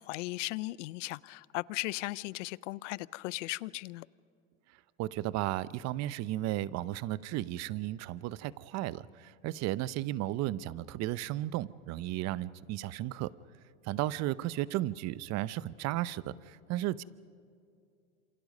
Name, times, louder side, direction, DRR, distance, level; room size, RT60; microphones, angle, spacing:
voice 1, 0.0-4.1, left 20 dB, 65° left, 0.7 m, -37 dB
voice 2, 5.0-13.3 13.8-17.0, right 15 dB, 40° right, 0.8 m, -34 dB
27.5 x 27.5 x 5.4 m
hypercardioid pair, 105°, 39 cm